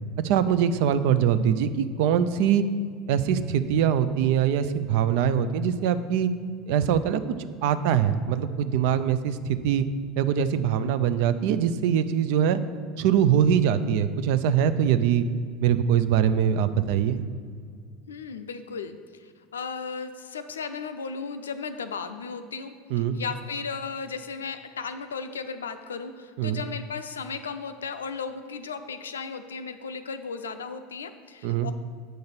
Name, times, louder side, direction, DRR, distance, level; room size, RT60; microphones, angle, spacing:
voice 1, 0.2-2.6 3.1-6.3 6.7-7.2 7.6-9.8 10.2-12.6 13.0-15.3 15.6-17.2 22.9-23.2 26.4-26.6 31.4-31.7, right 8 dB, 60° right, 12 dB, 0.4 m, -23 dB
voice 2, 18.1-22.7 23.1-31.7, left 5 dB, 80° left, 9 dB, 0.4 m, -35 dB
7.8 x 3.9 x 6.7 m, 2.1 s
figure-of-eight pair, 75°, 0 cm